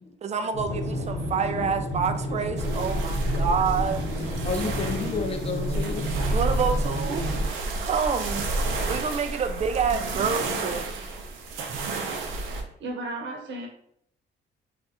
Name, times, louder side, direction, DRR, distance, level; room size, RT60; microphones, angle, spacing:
voice 1, 0.2-4.0 6.3-7.3 7.8-8.5 8.9-10.9, right 6 dB, 35° right, 7 dB, 0.4 m, -27 dB
sound 1, 0.5-7.5, left 1 dB, 65° left, 1.0 m, -31 dB
voice 2, 1.2-1.7 4.4-6.1, left 4 dB, 30° left, 5 dB, 0.5 m, -32 dB
sound 2, 2.6-12.6, right 2 dB, 80° right, 0.6 m, -30 dB
voice 3, 12.4-13.7, right 2 dB, 65° right, 1 dB, 1.0 m, -35 dB
2.5 x 2.4 x 4.1 m, 0.69 s
cardioid pair, 90°, 20 cm